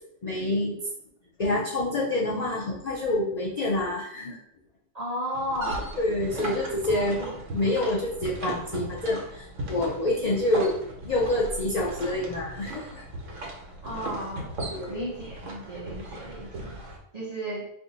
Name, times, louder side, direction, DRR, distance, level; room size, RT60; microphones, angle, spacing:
voice 1, 0.2-0.7 1.4-4.4 6.0-7.2 7.5-13.0 14.7-15.1, left 1 dB, 65° left, -4 dB, 0.4 m, -27 dB
voice 2, 4.9-5.9 6.3-6.5 6.8-7.4 13.8-14.5 14.9-16.8 17.1-17.6, equal, 45° right, -5 dB, 0.5 m, -34 dB
sound 1, 5.3-17.0, right 1 dB, 70° right, 1.1 m, -38 dB
2.6 x 2.5 x 3.9 m, 0.72 s
omnidirectional pair, 1.4 m